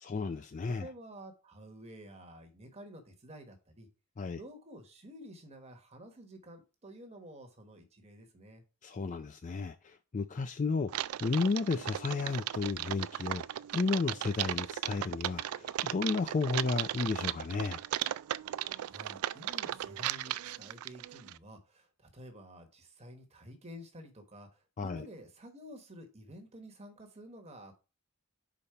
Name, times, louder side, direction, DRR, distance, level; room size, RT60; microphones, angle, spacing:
voice 1, 0.0-0.9 4.2-4.4 8.8-10.9 11.2-13.5 13.7-17.8 24.8-25.1, left 4 dB, 35° left, 0.4 m, -33 dB
voice 2, 0.7-3.9 4.4-8.6 18.8-27.8, equal, 30° right, 1.2 m, -51 dB
Typing, 10.9-21.4, right 13 dB, 80° right, 0.3 m, -36 dB
5.1 x 4.1 x 5.7 m
head